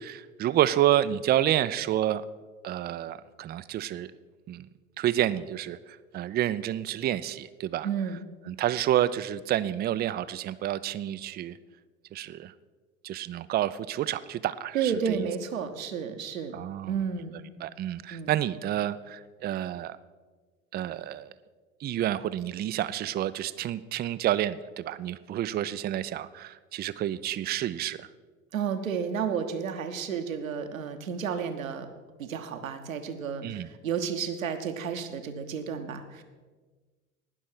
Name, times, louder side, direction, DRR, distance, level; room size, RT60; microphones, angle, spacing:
voice 1, 0.0-2.2 2.6-4.1 4.5-4.7 5.0-5.8 6.1-7.9 8.5-11.6 12.1-12.5 13.0-15.3 16.5-17.0 17.6-20.0 20.7-21.3 21.8-28.1 33.4-33.7, right 12 dB, 25° right, 15 dB, 0.4 m, -29 dB
voice 2, 7.8-8.2 14.7-16.6 16.9-17.4 18.1-18.3 28.5-31.9 32.2-36.2, right 7 dB, 75° right, 7 dB, 1.1 m, -32 dB
18.5 x 6.3 x 6.1 m, 1.4 s
figure-of-eight pair, 60°, 40 cm